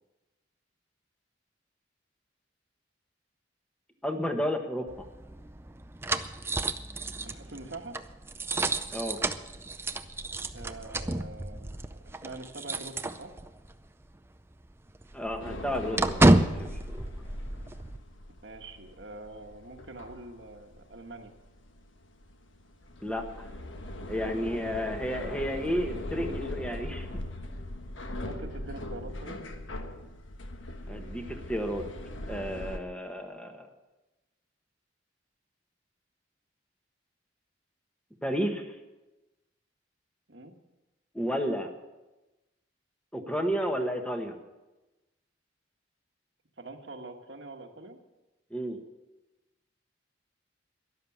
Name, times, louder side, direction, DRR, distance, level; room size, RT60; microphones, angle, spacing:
voice 1, 4.0-5.1 8.9-9.2 15.1-17.0 23.0-23.4 24.1-27.1 30.9-31.8 32.3-33.7 38.2-38.8 41.1-41.7 43.1-44.3 48.5-48.8, equal, 5° left, 4 dB, 1.3 m, -32 dB
sound 1, 4.9-13.7 14.0-14.2 14.5-18.0, right 2 dB, 15° right, 0.5 m, -30 dB
voice 2, 7.2-8.0 10.5-13.3 18.4-21.3 28.2-29.4 40.3-40.5 46.6-48.0, right 2 dB, 65° right, 5 dB, 1.5 m, -44 dB
sound 2, 15.4-32.8, left 1 dB, 85° left, 1.3 m, -40 dB
13.0 x 11.5 x 7.2 m, 1.1 s
head